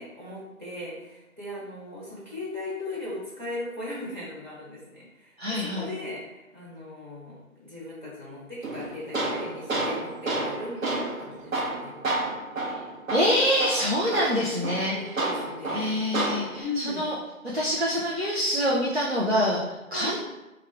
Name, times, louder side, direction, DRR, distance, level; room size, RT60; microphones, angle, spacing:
voice 1, 0.0-12.2 14.9-15.9 16.6-17.1 19.9-20.1, left 2 dB, 35° right, -8 dB, 1.1 m, -38 dB
voice 2, 5.4-5.9 12.6-12.7 13.1-15.3 15.7-17.1 17.5-20.2, equal, 50° right, -5 dB, 0.5 m, -26 dB
Tools, 8.6-16.6, right 2 dB, 70° right, 0.9 m, -30 dB
3.4 x 2.3 x 3.3 m, 1.0 s
figure-of-eight pair, 180°, 42 cm